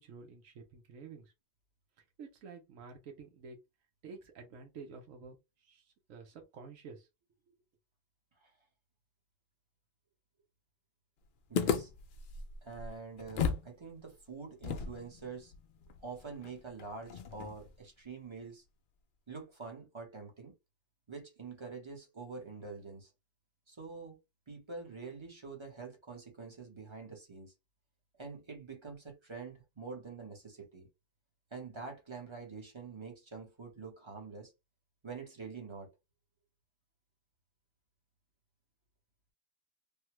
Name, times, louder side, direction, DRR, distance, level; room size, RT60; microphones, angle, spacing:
voice 1, 0.0-1.3 2.2-3.6 4.0-7.1 7.5-7.6, right 4 dB, 85° right, 1.2 m, -50 dB
sound 1, 11.5-13.7 14.0-14.1 14.6-17.8, left 6 dB, 65° left, 0.5 m, -36 dB
voice 2, 11.5-11.9 12.6-15.5 16.0-18.6 19.3-20.5 21.1-23.1 23.7-24.2 24.5-27.5 28.2-30.9 31.5-34.5 35.0-35.9, right 4 dB, 25° right, 0.9 m, -46 dB
3.3 x 2.2 x 3.0 m
omnidirectional pair, 1.3 m